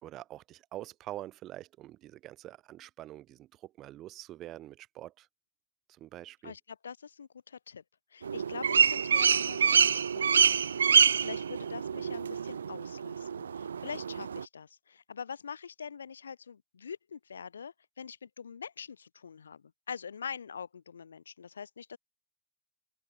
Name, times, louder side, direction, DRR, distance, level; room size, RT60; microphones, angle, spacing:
voice 1, 0.0-5.3 6.0-6.5, right 14 dB, 35° right, 5.7 m, -45 dB
voice 2, 6.4-7.8 8.1-22.0, left 6 dB, 70° left, 7.5 m, -44 dB
sound 1, 8.2-14.4, right 7 dB, 70° right, 0.4 m, -26 dB
figure-of-eight pair, 90°, 0 cm